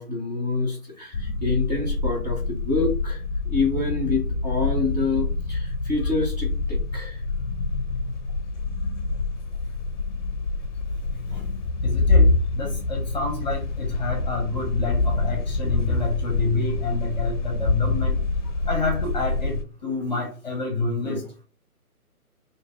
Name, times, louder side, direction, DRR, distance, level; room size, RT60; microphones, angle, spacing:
voice 1, 0.0-7.2, left 3 dB, 30° right, -3 dB, 0.8 m, -27 dB
sound 1, 1.1-19.6, left 3 dB, 55° left, 0.5 m, -26 dB
voice 2, 11.8-18.2 18.7-21.3, left 3 dB, 30° left, 0 dB, 0.9 m, -28 dB
2.9 x 2.6 x 3.5 m, 0.38 s
hypercardioid pair, 165°, 45 cm